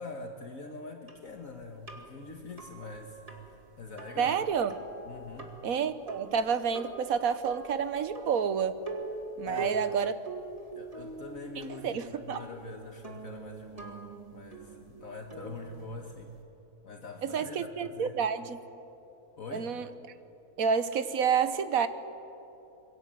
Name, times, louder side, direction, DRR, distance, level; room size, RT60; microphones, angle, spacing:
voice 1, 0.0-4.4 5.1-5.5 9.4-9.9 10.8-16.3 16.8-18.2 19.4-19.7, left 3 dB, 60° left, 3 dB, 1.8 m, -44 dB
sound 1, 1.1-16.4, right 3 dB, 25° right, 2.1 m, -44 dB
voice 2, 4.2-4.7 5.6-8.8 9.4-10.1 11.8-12.4 17.2-18.6 19.5-19.9 20.6-21.9, right 7 dB, 65° right, 12 dB, 1.5 m, -29 dB
26.5 x 22.0 x 7.7 m, 3.0 s
omnidirectional pair, 1.6 m